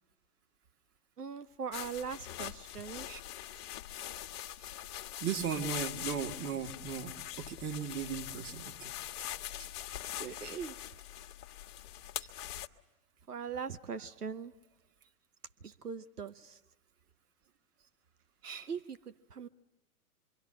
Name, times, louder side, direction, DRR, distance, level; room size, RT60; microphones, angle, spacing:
voice 1, 1.2-3.1 10.2-10.8 13.3-14.5 15.6-16.6 18.7-19.5, right 6 dB, 90° right, 13 dB, 0.9 m, -41 dB
sound 1, 1.7-12.7, left 12 dB, 45° left, 1.3 m, -43 dB
voice 2, 5.2-9.3 14.0-14.1 18.4-18.7, right 7 dB, 30° right, 5 dB, 2.2 m, -38 dB
26.5 x 24.0 x 8.9 m, 0.96 s
figure-of-eight pair, 105°, 45 cm